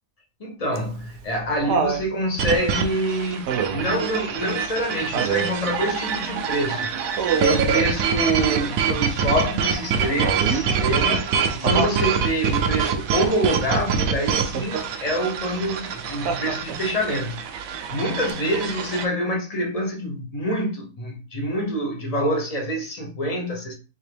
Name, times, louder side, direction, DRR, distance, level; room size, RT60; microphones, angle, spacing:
voice 1, 0.4-6.9 7.4-11.3 11.5-17.4 17.9-23.7, equal, 40° left, 0.5 m, -26 dB
Laughter, 0.8-2.1 3.5-4.0 5.1-5.6 7.2-7.7 10.2-10.7 11.6-12.0 14.4-14.9 16.3-16.9 18.3-18.4, right 6 dB, 85° right, 1.2 m, -26 dB
sound 1, 2.4-19.1, right 6 dB, 70° right, 0.9 m, -25 dB
3.5 x 2.9 x 3.3 m
omnidirectional pair, 1.7 m